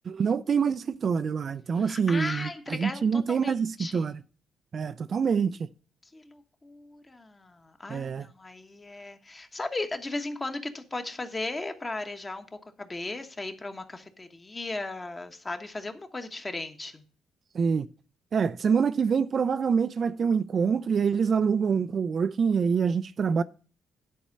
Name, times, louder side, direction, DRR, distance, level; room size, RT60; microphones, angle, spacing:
voice 1, 0.0-4.2 4.7-5.7 7.9-8.3 17.5-17.9 18.3-23.4, right 6 dB, 50° right, 0.4 m, -26 dB
voice 2, 1.8-3.5 3.8-4.0 6.1-12.5 12.8-17.0, left 2 dB, 25° left, 1.1 m, -36 dB
10.0 x 4.3 x 6.4 m
cardioid pair, 90°, 0 cm